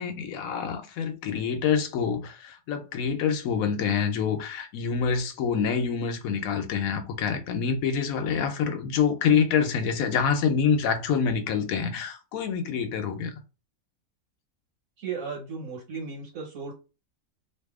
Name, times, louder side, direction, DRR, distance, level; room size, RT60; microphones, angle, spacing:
voice 1, 0.0-13.3, left 6 dB, 90° left, 1.1 m, -26 dB
voice 2, 15.0-16.7, right 5 dB, 80° right, 1.5 m, -35 dB
2.7 x 2.5 x 3.5 m
omnidirectional pair, 1.4 m